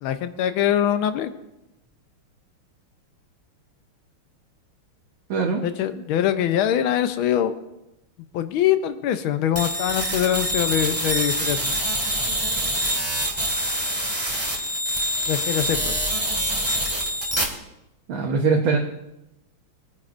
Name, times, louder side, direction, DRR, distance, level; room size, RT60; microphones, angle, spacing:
voice 1, 0.0-1.3 5.6-7.6 8.3-11.7 15.3-16.0, left 10 dB, 75° left, 10 dB, 1.5 m, -23 dB
voice 2, 5.3-5.6 18.1-18.8, right 4 dB, 70° right, -1 dB, 1.9 m, -21 dB
sound 1, 9.6-17.4, equal, 15° right, 1.7 m, -25 dB
23.5 x 9.5 x 2.5 m, 0.91 s
omnidirectional pair, 2.4 m